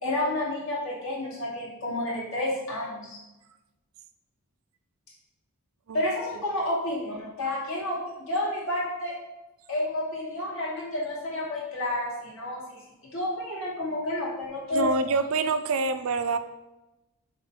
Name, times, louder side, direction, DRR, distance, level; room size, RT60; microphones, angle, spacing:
voice 1, 0.0-3.2 5.9-9.1 9.7-12.8 13.1-14.9, left 1 dB, 65° left, -5 dB, 2.5 m, -30 dB
voice 2, 14.7-16.4, right 3 dB, 65° right, 11 dB, 0.5 m, -26 dB
7.1 x 3.1 x 5.8 m, 1.0 s
head